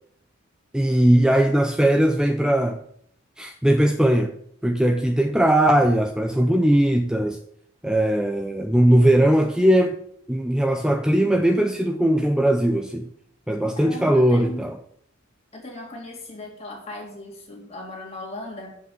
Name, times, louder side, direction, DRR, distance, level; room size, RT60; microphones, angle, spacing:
voice 1, 0.7-2.8 3.4-4.3 4.6-7.4 7.8-10.0 10.3-13.1 13.5-14.8, right 1 dB, 5° right, 4 dB, 0.6 m, -19 dB
voice 2, 13.7-14.7 15.5-18.8, left 2 dB, 30° left, 0 dB, 2.6 m, -37 dB
7.7 x 5.7 x 7.8 m, 0.64 s
head